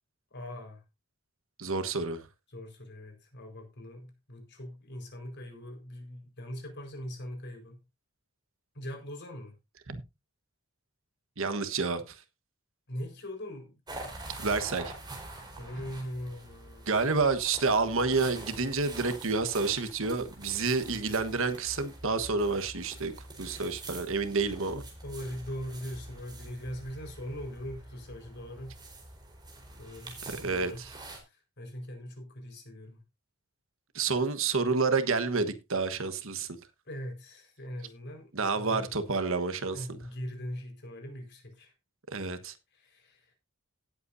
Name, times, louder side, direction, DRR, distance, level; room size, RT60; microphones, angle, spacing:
voice 1, 0.3-0.8 2.5-7.8 8.7-9.5 12.9-13.7 14.2-14.4 15.6-17.0 25.0-28.8 29.8-30.8 31.3-33.0 36.9-38.9 39.7-41.7 42.7-43.3, equal, 55° left, 4.7 m, -41 dB
voice 2, 1.6-2.2 9.9-10.0 11.4-12.2 14.4-14.9 16.9-23.1 23.4-24.8 30.3-30.9 33.9-36.6 38.3-40.0 42.1-42.5, right 4 dB, 65° right, 1.3 m, -29 dB
sound 1, 13.9-31.2, right 2 dB, 20° right, 4.3 m, -45 dB
18.0 x 8.3 x 2.7 m
head